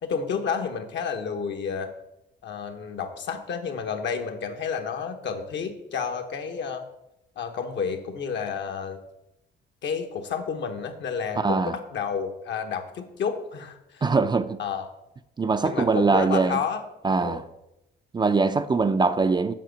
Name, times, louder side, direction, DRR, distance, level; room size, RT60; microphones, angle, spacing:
voice 1, 0.0-1.9 2.4-6.8 7.4-9.0 9.8-14.0 14.6-14.9 15.6-16.8 17.2-17.4, left 6 dB, 65° left, 1.1 m, -30 dB
voice 2, 11.4-11.8 14.0-14.6 15.4-16.6 17.0-17.4 18.1-19.5, right 4 dB, 20° right, 0.4 m, -22 dB
7.5 x 5.6 x 5.1 m
cardioid pair, 90°, 20 cm